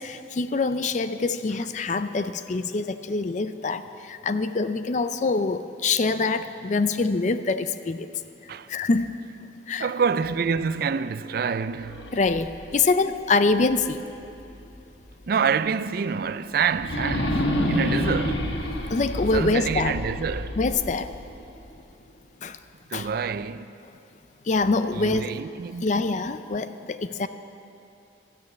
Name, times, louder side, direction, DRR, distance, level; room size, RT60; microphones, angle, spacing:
voice 1, 0.0-8.1 8.7-9.1 9.7-9.9 12.1-14.0 18.9-20.0 20.6-21.1 22.4-22.6 22.9-23.1 24.5-25.3 25.8-27.3, left 3 dB, 40° left, 0.4 m, -25 dB
voice 2, 9.8-12.1 15.3-18.6 19.3-20.6 22.9-23.7 24.9-25.9, right 6 dB, 50° right, 0.4 m, -27 dB
sound 1, 11.8-14.8 15.2-15.3 16.7-21.8, left 1 dB, 80° left, 1.4 m, -29 dB
13.5 x 9.6 x 8.4 m
head